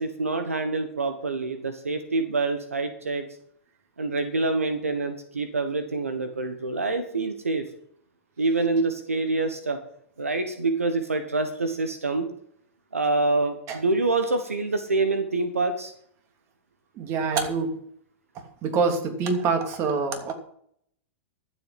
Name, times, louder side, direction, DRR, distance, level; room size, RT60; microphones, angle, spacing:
voice 1, 0.0-3.2 4.0-7.6 8.4-9.8 10.2-12.3 12.9-15.9, right 3 dB, 90° right, 8 dB, 1.3 m, -26 dB
voice 2, 16.9-17.8 18.3-20.3, right 4 dB, 40° right, 5 dB, 2.7 m, -26 dB
12.5 x 7.8 x 5.9 m, 0.66 s
hypercardioid pair, 105°, 7 cm